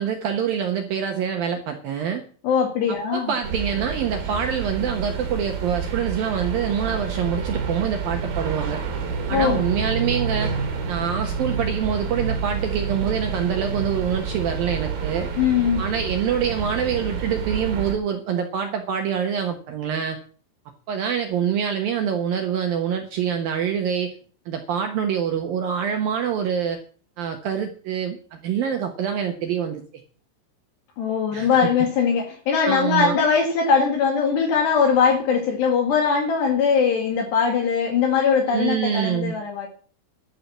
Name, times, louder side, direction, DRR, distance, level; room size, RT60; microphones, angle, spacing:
voice 1, 0.0-2.2 2.9-8.8 9.3-10.5 10.9-15.3 15.8-20.2 20.9-24.1 24.5-26.8 27.2-29.8 31.3-31.7 32.6-33.2 38.5-39.4, right 8 dB, 75° right, 4 dB, 2.1 m, -25 dB
voice 2, 2.4-3.3 9.3-9.6 15.4-15.8 31.0-39.7, left 6 dB, 60° left, 4 dB, 3.8 m, -21 dB
sound 1, 3.4-17.9, right 5 dB, 55° right, 3.7 m, -28 dB
12.0 x 8.5 x 7.3 m, 0.42 s
omnidirectional pair, 5.9 m